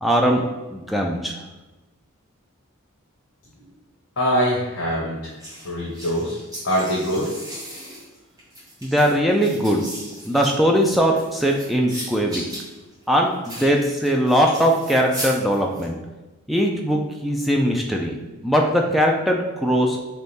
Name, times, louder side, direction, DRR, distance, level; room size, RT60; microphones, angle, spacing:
voice 1, 0.0-0.4 0.7-1.3 8.8-9.8 10.2-12.4 13.1-16.0 16.5-18.2 18.4-20.0, equal, ahead, 0 dB, 0.4 m, -20 dB
voice 2, 4.2-5.2 5.6-6.4 6.6-7.3, equal, 80° left, -5 dB, 1.0 m, -23 dB
sound 1, 5.4-15.8, equal, 15° right, 1.2 m, -37 dB
3.6 x 3.3 x 4.0 m, 1.1 s
head